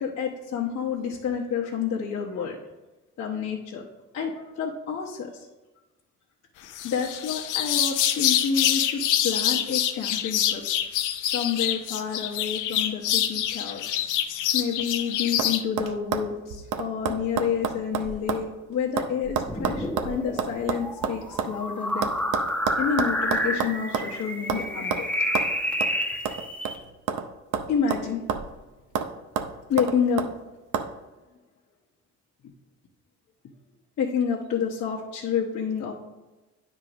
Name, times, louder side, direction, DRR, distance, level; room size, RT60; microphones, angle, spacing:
voice 1, 0.0-2.6 3.2-3.8 4.1-5.4 6.8-10.6 11.3-14.1 14.5-22.1 22.8-25.1 27.7-28.2 29.7-30.2 34.0-35.9, left 7 dB, 60° left, -4 dB, 1.1 m, -29 dB
sound 1, 6.7-15.6, left 11 dB, 85° left, 0.6 m, -26 dB
sound 2, 14.6-15.0 15.4-15.5 15.8-18.5 18.7-21.5 22.0-24.1 24.5-24.6 24.9-25.0 25.3-25.5 25.8-25.9 26.2-27.3 27.5-28.6 28.9-29.1 29.4-30.3 30.7-30.9, right 7 dB, 85° right, 0.7 m, -29 dB
sound 3, 19.4-26.8, equal, 5° left, 1.3 m, -29 dB
9.6 x 3.7 x 5.1 m, 1.1 s
cardioid pair, 90°, 30 cm